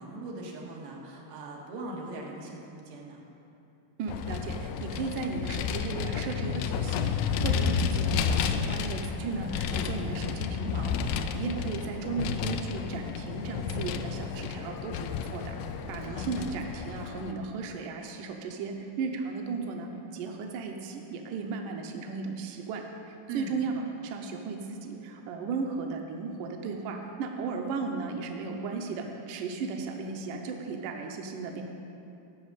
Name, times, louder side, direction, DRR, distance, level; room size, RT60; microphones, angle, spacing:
voice 1, 0.0-3.2 16.0-16.3 23.3-23.6, right 2 dB, 90° right, -2 dB, 3.4 m, -40 dB
voice 2, 4.0-15.6 15.9-31.6, right 4 dB, 75° right, 2 dB, 2.2 m, -35 dB
Vehicle, 4.1-17.3, left 7 dB, 90° left, 2.4 m, -31 dB
13.0 x 5.9 x 8.1 m, 2.8 s
omnidirectional pair, 4.2 m